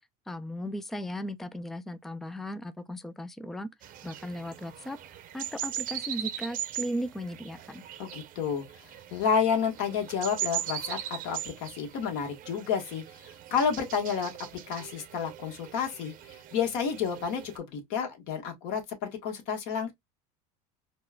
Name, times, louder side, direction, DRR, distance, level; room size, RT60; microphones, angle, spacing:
voice 1, 0.3-3.7 4.0-5.0 5.3-7.8, equal, ahead, 0.3 m, -36 dB
sound 1, 3.8-17.6, right 11 dB, 45° right, 0.7 m, -40 dB
voice 2, 8.0-8.6 9.1-14.3 14.7-19.9, left 6 dB, 65° left, 1.4 m, -30 dB
4.3 x 2.2 x 2.2 m
supercardioid pair, 110°, 19 cm